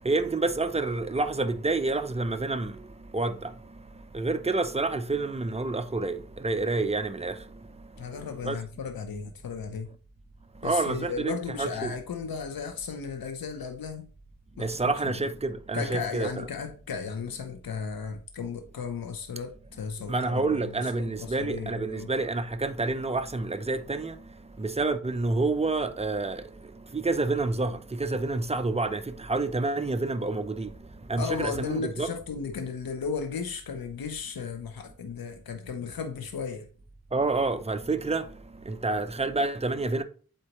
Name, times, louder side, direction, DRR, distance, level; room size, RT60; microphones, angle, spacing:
voice 1, 0.0-2.7 3.1-3.5 4.1-6.2 6.4-7.3 8.4-8.6 10.6-11.3 11.6-11.9 14.6-16.5 20.1-24.1 24.6-26.4 26.9-30.7 31.1-32.1 37.1-38.2 38.7-40.0, right 3 dB, 20° right, 0.6 m, -28 dB
voice 2, 8.0-9.9 10.6-14.1 14.6-14.7 15.0-15.2 15.7-22.1 31.2-36.7, left 5 dB, 85° left, 0.8 m, -35 dB
8.0 x 4.3 x 3.0 m
wide cardioid pair, 70°, 35 cm